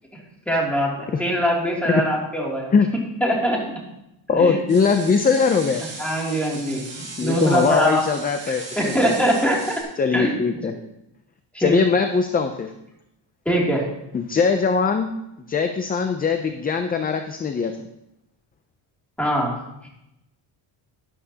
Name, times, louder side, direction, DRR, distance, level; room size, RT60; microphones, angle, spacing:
voice 1, 0.5-2.7 3.2-3.6 4.3-4.6 6.0-6.8 7.2-8.0 8.4-9.8 10.1-10.3 10.6-10.7 11.5-11.7 13.4-13.8 19.2-19.5, equal, 5° left, -3 dB, 2.6 m, -22 dB
voice 2, 4.3-5.9 7.2-9.1 10.0-10.7 11.6-12.7 14.1-15.1 15.5-17.9, left 5 dB, 20° left, 6 dB, 0.4 m, -21 dB
sound 1, 4.7-9.8, right 3 dB, 35° right, 3.2 m, -37 dB
12.5 x 11.0 x 2.8 m, 0.86 s
cardioid pair, 150°, 49 cm